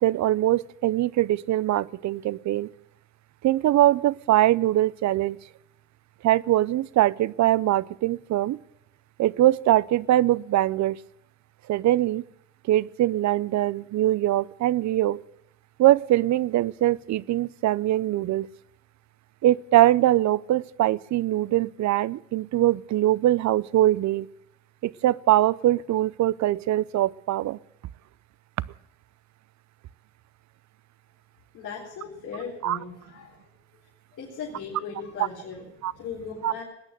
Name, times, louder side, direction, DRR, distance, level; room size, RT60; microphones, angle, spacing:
voice 1, 0.0-2.7 3.4-5.4 6.2-8.6 9.2-11.0 11.7-12.2 12.7-15.2 15.8-18.5 19.4-24.3 24.8-27.6 32.6-32.8 35.8-35.9 36.4-36.5, right 14 dB, 65° right, 20 dB, 0.6 m, -22 dB
voice 2, 31.5-33.4 34.1-35.6 35.9-36.6, left 6 dB, 80° left, -6 dB, 4.1 m, -38 dB
20.0 x 9.0 x 7.5 m, 0.86 s
cardioid pair, 90°, 30 cm